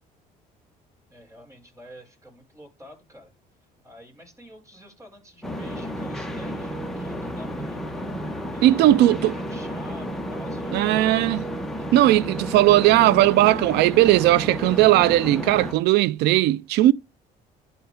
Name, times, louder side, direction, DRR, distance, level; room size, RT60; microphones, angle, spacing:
voice 1, 1.1-3.3 3.8-8.1 8.5-11.2, equal, 20° right, 5.2 m, -47 dB
sound 1, 5.4-15.7, equal, ahead, 1.4 m, -32 dB
voice 2, 8.6-9.3 10.7-11.4 11.9-16.9, right 15 dB, 80° right, 0.4 m, -18 dB
11.0 x 4.5 x 3.6 m
cardioid pair, 110°, 17 cm